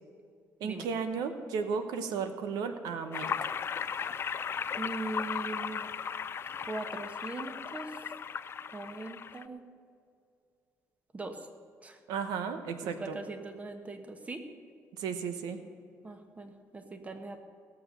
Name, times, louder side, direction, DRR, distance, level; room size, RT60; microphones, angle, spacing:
voice 1, 0.6-3.5 12.1-13.2 15.0-15.6, right 6 dB, 90° right, 8 dB, 0.9 m, -34 dB
sound 1, 3.1-9.4, left 7 dB, 40° left, 0.4 m, -36 dB
voice 2, 4.8-5.9 6.7-7.9 8.7-9.6 11.1-11.4 11.8-12.0 12.8-14.4 16.0-17.4, right 3 dB, 20° right, 7 dB, 1.2 m, -40 dB
17.5 x 6.9 x 6.7 m, 2.3 s
cardioid pair, 105°, 7 cm